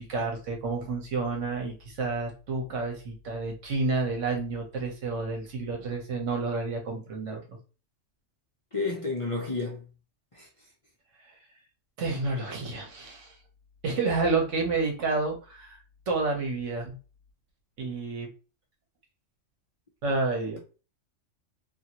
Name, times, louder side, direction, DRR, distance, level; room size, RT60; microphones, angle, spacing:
voice 1, 0.0-7.6 12.0-13.3 13.8-15.8 16.1-16.9 17.8-18.3 20.0-20.6, right 3 dB, 70° right, 1.2 m, -30 dB
voice 2, 8.7-9.9 10.3-10.5, left 3 dB, 40° left, 0.5 m, -31 dB
2.7 x 2.6 x 2.9 m
omnidirectional pair, 1.3 m